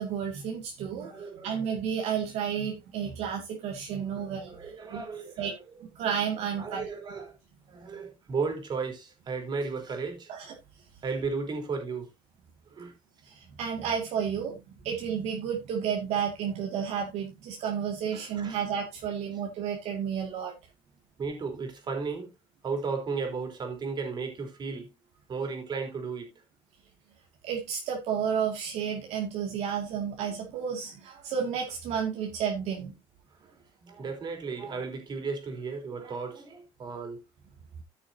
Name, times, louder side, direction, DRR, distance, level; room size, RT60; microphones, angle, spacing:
voice 1, 0.0-1.1 1.4-4.6 4.9-5.1 5.4-5.5 5.9-6.9 10.3-10.5 13.2-20.5 27.4-32.9, right 7 dB, 70° right, 2.3 m, -31 dB
voice 2, 1.0-1.8 3.9-5.6 6.6-7.3 7.7-10.3 11.0-12.1 12.7-12.9 18.1-18.6 21.2-22.3 22.6-24.9 25.3-26.3 33.5-37.2, right 4 dB, 40° right, 3.8 m, -35 dB
14.5 x 6.3 x 2.8 m
cardioid pair, 115°, 11 cm